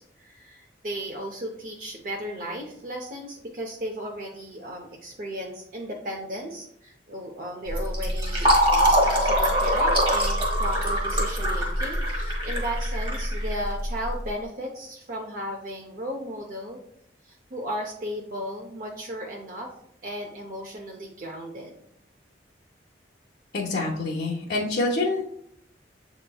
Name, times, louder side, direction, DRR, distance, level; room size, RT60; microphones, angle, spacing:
voice 1, 0.0-16.8 17.2-19.7 20.0-21.7, equal, 50° right, 1 dB, 0.5 m, -35 dB
Fill (with liquid), 7.7-14.1, equal, 30° right, 1.3 m, -23 dB
voice 2, 23.5-25.3, left 2 dB, 55° left, -3 dB, 0.6 m, -26 dB
7.6 x 3.0 x 2.2 m, 0.71 s
head